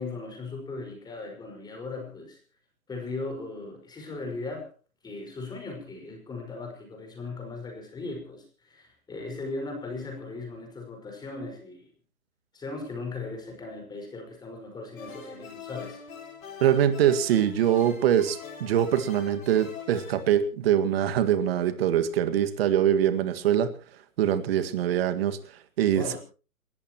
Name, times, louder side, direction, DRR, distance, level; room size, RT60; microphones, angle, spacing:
voice 1, 0.0-2.4 2.9-4.7 5.0-11.8 12.5-16.0 26.0-26.2, left 3 dB, 10° left, 2 dB, 5.4 m, -38 dB
sound 1, 15.0-20.3, left 6 dB, 70° left, 7.0 m, -43 dB
voice 2, 16.6-23.7 24.2-25.4 25.8-26.2, right 10 dB, 45° right, 10 dB, 2.0 m, -23 dB
29.5 x 14.0 x 3.0 m, 0.36 s
hypercardioid pair, 140°, 43 cm